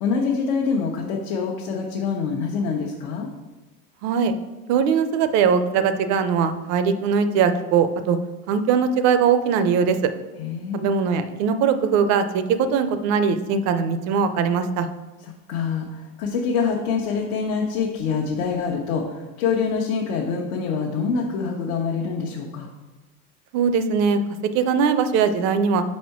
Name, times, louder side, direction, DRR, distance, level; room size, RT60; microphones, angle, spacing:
voice 1, 0.0-3.3 10.4-10.9 15.2-22.7, left 5 dB, 75° left, -1 dB, 1.0 m, -25 dB
voice 2, 4.0-4.3 4.7-8.2 8.5-10.0 10.7-14.9 23.5-24.2 24.5-25.8, right 6 dB, 40° right, 10 dB, 0.5 m, -20 dB
5.4 x 4.3 x 5.8 m, 1.1 s
supercardioid pair, 145°, 41 cm